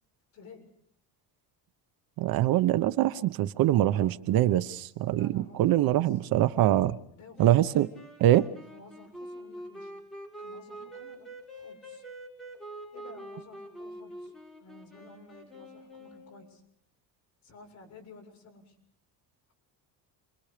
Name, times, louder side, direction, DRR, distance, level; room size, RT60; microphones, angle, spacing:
voice 1, 0.3-0.7 5.1-6.2 7.1-7.6 8.6-9.9 10.4-12.0 12.9-14.3 14.6-16.6 17.4-18.8, left 3 dB, 45° left, 7.5 m, -53 dB
voice 2, 2.2-7.0 7.4-7.9 8.2-8.5, right 13 dB, 60° right, 1.0 m, -24 dB
sound 1, 7.4-16.5, right 1 dB, ahead, 6.7 m, -45 dB
29.5 x 23.0 x 5.1 m
cardioid pair, 165°, 40 cm